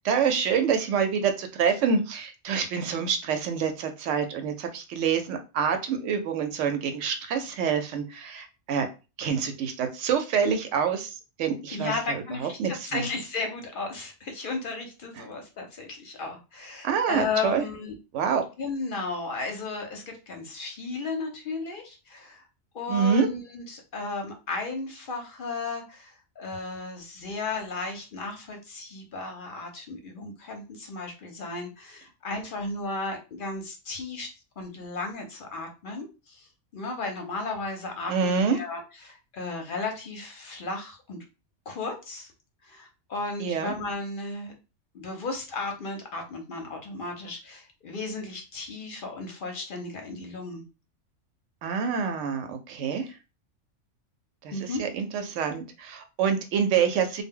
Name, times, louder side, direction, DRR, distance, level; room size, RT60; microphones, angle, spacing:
voice 1, 0.0-8.9 9.2-13.1 15.2-15.3 16.8-17.6 18.1-18.4 22.9-23.3 38.1-38.6 43.4-43.7 51.6-53.1 54.4-57.2, right 6 dB, 75° right, 6 dB, 0.9 m, -27 dB
voice 2, 11.7-17.9 18.6-22.4 22.7-34.3 34.6-41.2 41.7-42.3 42.6-44.5 44.9-50.6 54.5-54.8, left 3 dB, 55° left, 3 dB, 0.6 m, -34 dB
2.1 x 2.0 x 3.5 m, 0.30 s
omnidirectional pair, 1.3 m